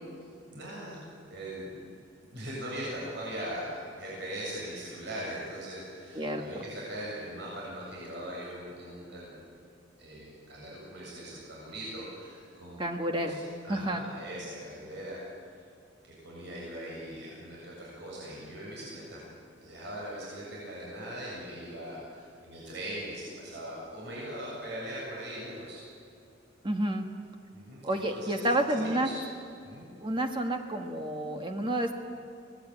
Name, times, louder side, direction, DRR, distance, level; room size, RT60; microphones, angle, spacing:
voice 1, 0.5-1.7 2.3-9.4 10.0-12.8 13.2-13.3 13.6-15.2 15.5-15.6 16.0-19.3 19.6-25.8 27.5-29.2 29.6-29.9, right 1 dB, 65° right, -5 dB, 7.7 m, -40 dB
voice 2, 12.8-13.3 13.7-14.0 26.6-27.0 27.8-29.1 30.0-32.0, right 1 dB, 25° right, 4 dB, 1.5 m, -29 dB
25.0 x 19.5 x 9.2 m, 2.6 s
head